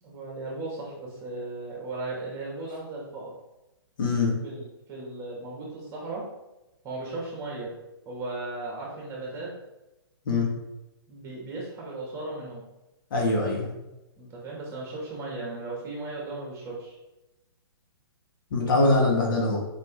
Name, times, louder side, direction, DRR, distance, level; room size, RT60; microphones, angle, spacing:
voice 1, 0.0-3.3 4.4-6.2 6.8-7.7 8.1-9.5 11.1-12.6 14.2-17.0, right 2 dB, 20° right, -4 dB, 2.5 m, -36 dB
voice 2, 4.0-4.3 10.3-10.5 13.1-13.7 18.5-19.6, left 2 dB, 55° left, -2 dB, 2.2 m, -23 dB
5.7 x 5.2 x 3.9 m, 0.97 s
hypercardioid pair, 130°, 13 cm